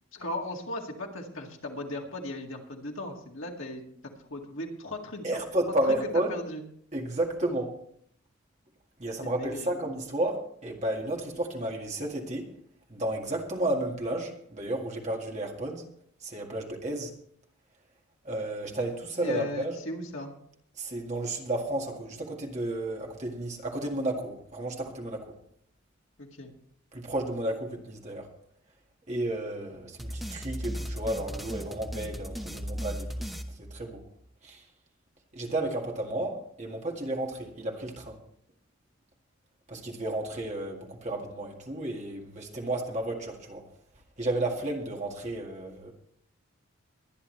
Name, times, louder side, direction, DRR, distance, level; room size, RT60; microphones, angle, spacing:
voice 1, 0.1-3.9 4.3-5.3 5.8-6.0 6.3-6.6 9.2-9.7 19.2-20.3 26.2-26.5, left 1 dB, 65° left, 1 dB, 2.1 m, -37 dB
voice 2, 5.2-6.4 6.9-7.8 9.0-12.5 12.9-15.8 16.2-17.1 18.2-19.8 20.8-25.3 26.9-28.3 29.1-34.0 34.4-34.6 35.3-38.2 39.7-43.6 44.2-45.9, right 1 dB, 30° right, 1 dB, 1.9 m, -32 dB
sound 1, 30.0-34.3, equal, ahead, 0.9 m, -37 dB
22.5 x 9.9 x 3.3 m, 0.65 s
head